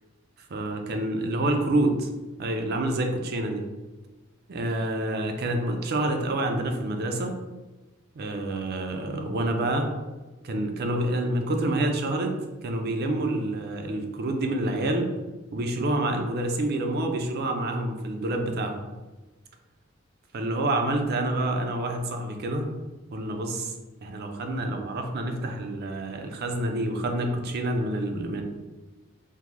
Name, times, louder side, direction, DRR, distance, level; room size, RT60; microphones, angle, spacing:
voice 1, 0.5-2.1 2.4-3.6 4.5-7.3 8.1-9.9 10.4-15.1 15.5-18.8 20.3-22.7 23.1-23.7 24.0-28.4, right 1 dB, 50° right, 4 dB, 0.4 m, -27 dB
3.6 x 2.1 x 3.0 m, 1.2 s
head